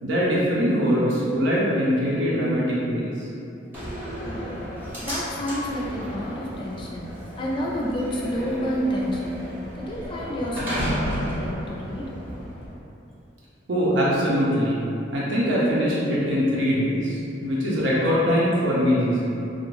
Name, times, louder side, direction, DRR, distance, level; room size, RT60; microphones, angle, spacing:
voice 1, 0.0-3.3 13.7-14.8 15.1-19.2, equal, 80° right, -7 dB, 0.5 m, -22 dB
Slam, 3.7-12.7, equal, 10° right, 0.6 m, -33 dB
voice 2, 4.2-4.6 5.0-7.1 7.4-9.4 9.8-12.1, equal, 25° left, -4 dB, 0.3 m, -29 dB
2.5 x 2.0 x 3.0 m, 2.8 s
head